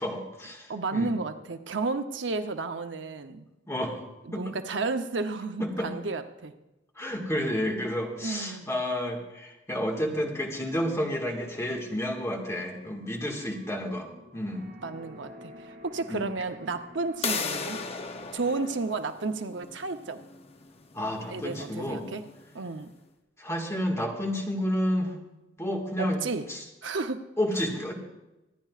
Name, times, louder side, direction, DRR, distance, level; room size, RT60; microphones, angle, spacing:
voice 1, 0.0-1.1 3.7-4.0 4.3-4.4 5.6-5.9 7.0-14.7 16.1-16.2 20.9-22.0 23.4-25.1 25.6-26.2 26.5-26.6 27.4-27.9, equal, 15° left, 0 dB, 1.8 m, -30 dB
voice 2, 0.7-3.4 4.3-6.5 8.2-8.7 10.7-10.9 14.8-17.8 18.3-20.2 21.3-22.2 22.5-22.9 26.0-26.4 26.8-27.2, right 3 dB, 80° right, 8 dB, 0.8 m, -32 dB
sound 1, 11.6-18.3, equal, 45° right, 3.3 m, -50 dB
sound 2, 17.2-22.8, left 5 dB, 35° left, 0.8 m, -37 dB
26.0 x 10.0 x 2.5 m, 1.0 s
head